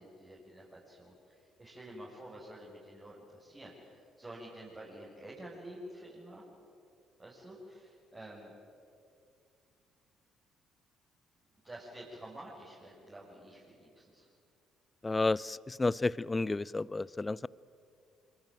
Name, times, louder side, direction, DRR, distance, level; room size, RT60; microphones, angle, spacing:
voice 1, 0.0-6.4 7.2-8.5 11.6-14.3, right 1 dB, 25° right, -5 dB, 6.9 m, -49 dB
voice 2, 15.0-17.5, left 3 dB, 20° left, 23 dB, 0.6 m, -31 dB
26.5 x 23.5 x 9.1 m, 2.4 s
figure-of-eight pair, 45°, 0 cm